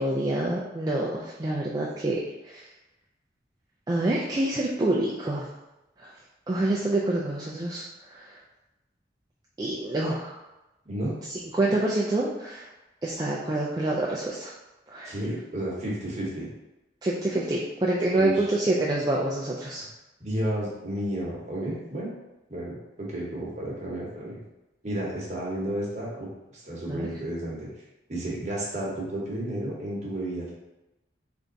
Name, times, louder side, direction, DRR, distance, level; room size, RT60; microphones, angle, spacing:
voice 1, 0.0-2.2 2.5-2.6 3.9-5.5 6.0-6.1 6.5-7.8 8.1-8.3 9.6-10.3 11.5-12.7 13.0-14.5 14.9-15.1 17.0-19.8 26.9-27.1, right 1 dB, 20° right, -4 dB, 0.3 m, -27 dB
voice 2, 10.8-11.2 15.0-16.5 18.1-18.6 20.2-22.1 22.5-24.4 24.8-26.3 26.5-27.7 28.1-30.5, right 1 dB, 40° right, -4 dB, 1.0 m, -32 dB
3.4 x 2.6 x 3.9 m, 0.98 s
head